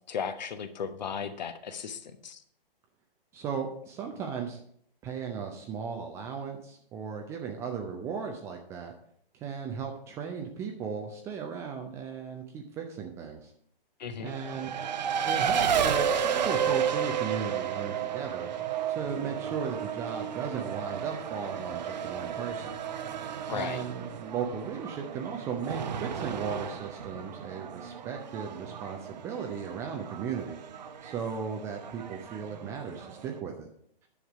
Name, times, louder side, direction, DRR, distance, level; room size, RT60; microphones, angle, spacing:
voice 1, 0.1-2.4 14.0-14.3 23.5-23.8, left 6 dB, 45° left, 10 dB, 1.0 m, -36 dB
voice 2, 3.3-4.6 5.0-8.9 9.3-13.5 14.2-14.7 15.3-18.5 18.9-22.7 23.5-30.6 31.0-33.7, right 6 dB, 10° right, 3 dB, 0.5 m, -36 dB
Race car auto racing, 14.3-33.4, right 8 dB, 45° right, 0.9 m, -33 dB
10.0 x 7.2 x 4.7 m, 0.65 s
figure-of-eight pair, 125°, 29 cm